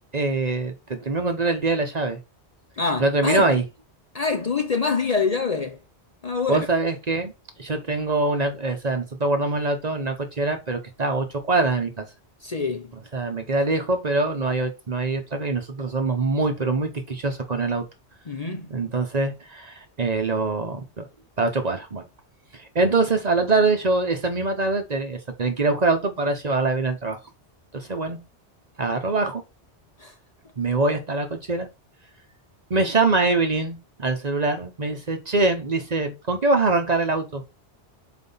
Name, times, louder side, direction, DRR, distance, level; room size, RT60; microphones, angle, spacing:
voice 1, 0.1-2.2 3.0-3.6 6.5-7.3 7.6-12.1 13.1-17.9 18.7-21.0 21.4-22.0 22.5-27.2 27.7-28.2 28.8-29.4 30.6-31.7 32.7-37.4, right 3 dB, 40° right, 0.9 m, -24 dB
voice 2, 2.8-3.6 4.1-5.8 6.2-6.7 12.4-12.9 18.3-18.7 30.0-30.1, left 4 dB, 40° left, 0.7 m, -25 dB
4.3 x 4.2 x 5.5 m
omnidirectional pair, 1.1 m